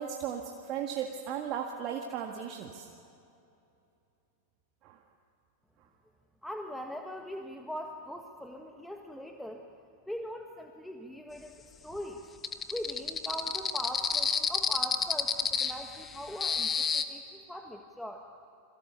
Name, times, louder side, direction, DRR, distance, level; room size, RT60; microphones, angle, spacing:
voice 1, 0.0-2.9 4.8-5.0, right 8 dB, 40° right, 2 dB, 1.8 m, -36 dB
voice 2, 6.4-9.6 10.1-11.5 11.8-12.2 12.7-18.2, equal, ahead, 3 dB, 1.6 m, -41 dB
sound 1, 12.4-17.0, left 6 dB, 20° left, 1.5 m, -30 dB
30.0 x 22.5 x 6.9 m, 2.7 s
figure-of-eight pair, 90°, 0 cm